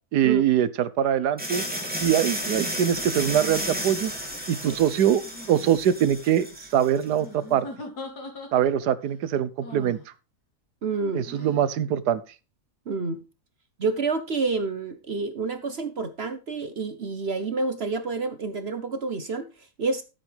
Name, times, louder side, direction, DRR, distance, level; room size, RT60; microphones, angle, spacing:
voice 1, 0.1-1.6 2.0-4.1 4.5-7.7 8.5-10.0 11.1-12.2, right 10 dB, 85° right, 1.4 m, -23 dB
sound 1, 1.4-7.1, equal, 5° right, 2.3 m, -32 dB
sound 2, 1.7-1.9 3.2-4.1 5.2-5.8 7.2-8.9 9.6-10.1 11.2-11.7, left 2 dB, 75° left, 3.1 m, -41 dB
voice 2, 10.8-11.2 11.9-12.0 12.9-13.2 13.8-19.5 19.8-20.0, right 4 dB, 45° right, 1.0 m, -28 dB
13.0 x 8.2 x 3.3 m
omnidirectional pair, 1.7 m